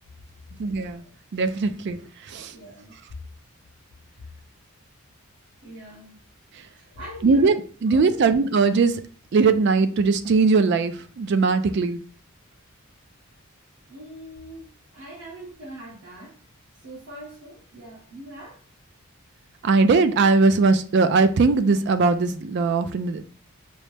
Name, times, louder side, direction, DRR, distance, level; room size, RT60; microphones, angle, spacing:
voice 1, 0.6-1.0 1.3-2.0 2.3-2.5 7.2-9.0 9.3-12.0 19.6-23.3, right 4 dB, 50° right, 0.3 m, -20 dB
voice 2, 2.5-3.0 5.6-6.2 6.8-7.5 7.9-8.3 13.9-14.6 14.9-16.3 16.8-18.6, right 1 dB, 85° right, 1.4 m, -42 dB
5.4 x 2.0 x 3.2 m
head